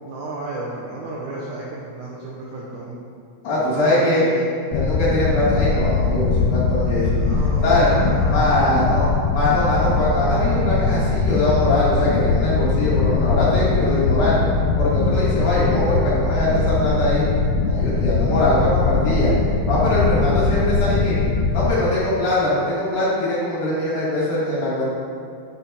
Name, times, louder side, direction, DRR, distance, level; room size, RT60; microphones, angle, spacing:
voice 1, 0.0-3.0 3.5-4.5 7.2-8.8 17.8-18.6, right 2 dB, 75° right, -5 dB, 1.8 m, -33 dB
voice 2, 3.4-4.3 4.7-7.2 7.6-7.9 8.3-9.1 9.3-14.4 14.8-17.2 17.6-19.3 19.7-21.2 21.5-24.9, left 1 dB, 60° left, -9 dB, 3.1 m, -21 dB
sound 1, 4.7-21.7, left 4 dB, 90° left, 2.6 m, -21 dB
8.8 x 4.3 x 4.2 m, 2.3 s
omnidirectional pair, 4.3 m